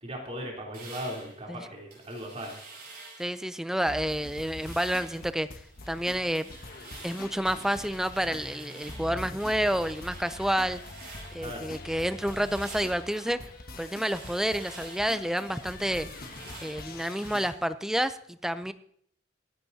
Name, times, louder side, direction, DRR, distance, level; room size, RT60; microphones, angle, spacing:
voice 1, 0.0-2.6 11.4-11.6, equal, 35° right, -1 dB, 3.3 m, -38 dB
sound 1, 0.7-3.4 3.8-5.3 5.6-11.5 11.9-17.5, right 3 dB, 50° right, 7.0 m, -49 dB
voice 2, 3.2-5.5 5.9-6.5 7.0-10.8 11.3-13.4 13.8-16.1 16.6-18.7, equal, ahead, 12 dB, 0.4 m, -29 dB
sound 2, 3.9-17.5, left 2 dB, 50° left, 1.4 m, -44 dB
26.5 x 10.0 x 2.8 m, 0.64 s
head